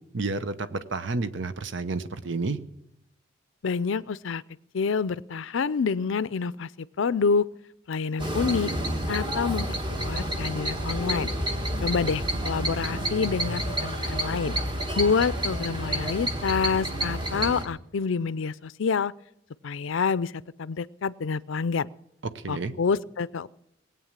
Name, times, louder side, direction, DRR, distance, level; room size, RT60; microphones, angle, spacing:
voice 1, 0.1-2.6 22.3-22.7, right 3 dB, 65° right, 11 dB, 0.8 m, -30 dB
voice 2, 3.6-4.4 4.7-7.5 7.9-8.7 9.1-11.3 11.8-14.5 15.0-19.1 19.6-20.3 20.6-21.9 22.5-23.5, left 5 dB, 75° left, 19 dB, 0.5 m, -27 dB
sound 1, 8.2-17.7, right 1 dB, 25° right, 1.5 m, -29 dB
19.0 x 8.8 x 7.3 m, 0.81 s
head